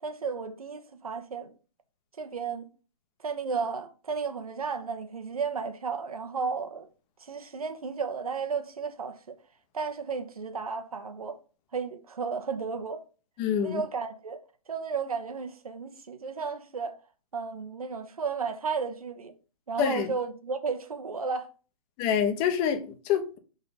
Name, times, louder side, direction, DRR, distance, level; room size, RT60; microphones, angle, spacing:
voice 1, 0.0-1.5 2.2-2.7 3.2-6.9 7.2-9.4 9.7-11.4 11.7-13.0 13.6-14.4 14.7-16.9 17.3-19.3 19.7-21.5, right 5 dB, 75° right, 1.1 m, -33 dB
voice 2, 13.4-13.8 19.8-20.1 22.0-23.4, left 8 dB, 25° left, 0.9 m, -26 dB
6.4 x 3.9 x 4.1 m
figure-of-eight pair, 130°, 19 cm